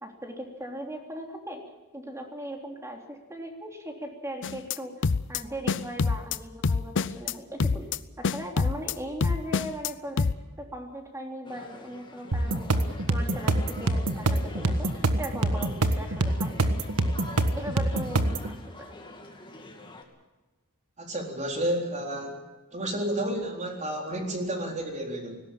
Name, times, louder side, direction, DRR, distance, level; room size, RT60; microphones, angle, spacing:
voice 1, 0.0-1.6 1.9-4.9 5.3-7.9 8.2-16.7 17.6-19.0, equal, 15° right, 2 dB, 3.4 m, -39 dB
sound 1, 4.4-4.8 5.0-5.4 5.7-6.4 6.6-7.3 7.6-8.0 8.2-8.9 9.2-9.9 10.2-10.3, left 4 dB, 55° left, 0.6 m, -26 dB
sound 2, 11.4-20.0, left 2 dB, 20° left, 2.5 m, -45 dB
sound 3, 12.3-18.5, right 2 dB, 90° right, 1.6 m, -25 dB
voice 2, 21.0-22.4 22.7-25.4, right 1 dB, 30° right, 2 dB, 4.0 m, -31 dB
19.0 x 17.0 x 8.9 m, 1.1 s
head